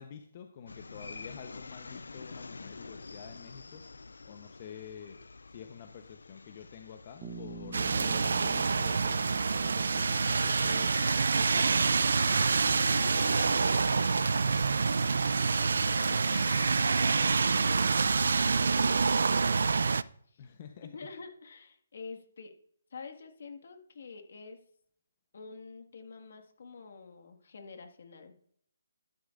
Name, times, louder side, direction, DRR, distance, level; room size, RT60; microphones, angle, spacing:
voice 1, 0.0-3.8 4.2-5.2 5.5-10.9 11.3-11.7 20.4-20.9, left 8 dB, 35° left, 6 dB, 0.9 m, -48 dB
sound 1, 0.7-17.9, left 3 dB, 90° left, 0.4 m, -45 dB
Bass guitar, 7.2-11.1, right 4 dB, 15° right, 1.0 m, -47 dB
sound 2, 7.7-20.0, right 4 dB, 70° right, 0.4 m, -27 dB
voice 2, 12.8-14.3 15.2-17.1 17.5-20.5 20.8-22.5 22.9-24.6 25.3-28.6, left 4 dB, 60° left, 6 dB, 1.8 m, -49 dB
12.5 x 11.5 x 2.6 m, 0.65 s
hypercardioid pair, 160°, 0 cm